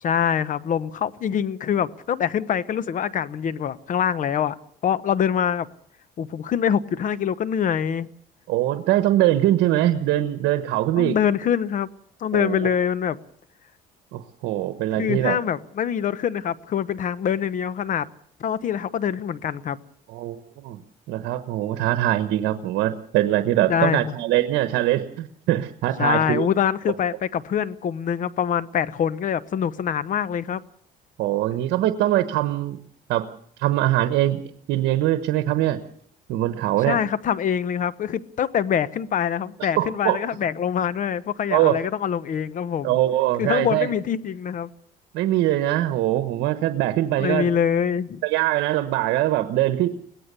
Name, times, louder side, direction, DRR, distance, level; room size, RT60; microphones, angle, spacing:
voice 1, 0.0-4.5 4.8-5.7 6.2-8.1 11.0-11.9 12.2-13.2 15.0-18.1 18.4-19.8 23.7-24.1 26.0-30.6 36.8-43.0 43.4-44.7 47.2-48.2, left 8 dB, 50° left, 16 dB, 1.0 m, -24 dB
voice 2, 8.5-11.2 12.3-12.7 14.1-15.4 20.1-20.8 21.1-26.5 31.2-32.8 33.1-33.3 33.6-34.4 34.7-35.8 36.3-37.0 39.7-40.2 41.5-41.7 42.8-43.9 45.1-47.5 48.2-49.9, right 14 dB, 85° right, 10 dB, 1.2 m, -22 dB
22.5 x 17.5 x 6.9 m, 0.64 s
cardioid pair, 110°, 17 cm